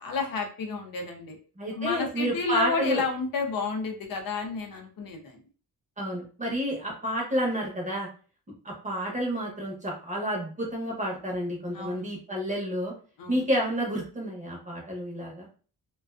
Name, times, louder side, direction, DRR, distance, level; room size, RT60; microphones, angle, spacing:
voice 1, 0.0-1.4 1.7-5.4 11.7-12.0 13.2-13.4, left 4 dB, 65° left, 3 dB, 0.6 m, -31 dB
voice 2, 1.6-3.0 6.0-8.1 8.6-12.9 13.3-15.5, equal, 20° right, -2 dB, 0.7 m, -30 dB
2.3 x 2.3 x 2.3 m, 0.39 s
wide cardioid pair, 145°, 37 cm